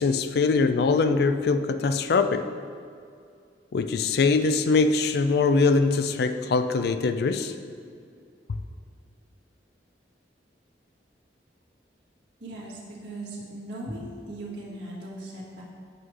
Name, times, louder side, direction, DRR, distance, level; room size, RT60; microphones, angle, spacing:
voice 1, 0.0-2.5 3.7-7.5, left 4 dB, 60° left, 10 dB, 0.3 m, -22 dB
voice 2, 12.4-15.6, right 1 dB, 75° right, -5 dB, 1.5 m, -38 dB
7.7 x 3.2 x 4.8 m, 2.3 s
head